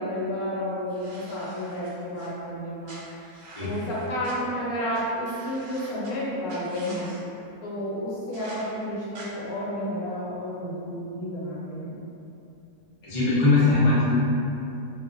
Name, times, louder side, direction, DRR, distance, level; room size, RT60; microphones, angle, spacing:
voice 1, 0.0-3.0 3.6-7.1 7.6-12.0, equal, 75° left, -7 dB, 1.2 m, -31 dB
sound 1, 0.9-2.3 2.8-4.3 4.9-5.0 5.2-6.1 6.5-7.2 8.3-8.6 9.1-9.3, right 2 dB, 80° right, 1.1 m, -45 dB
voice 2, 13.0-14.1, left 3 dB, 40° left, -10 dB, 0.6 m, -20 dB
2.9 x 2.3 x 2.5 m, 2.7 s
omnidirectional pair, 1.6 m